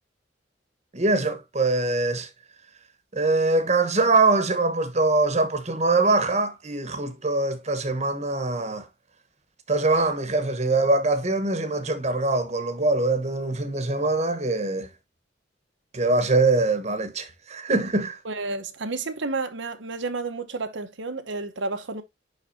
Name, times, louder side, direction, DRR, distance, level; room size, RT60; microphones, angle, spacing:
voice 1, 0.9-2.3 3.1-8.9 9.7-14.9 15.9-18.2, right 3 dB, 35° right, 1.1 m, -23 dB
voice 2, 18.2-22.0, right 3 dB, 85° right, 1.0 m, -31 dB
11.0 x 4.0 x 2.7 m
head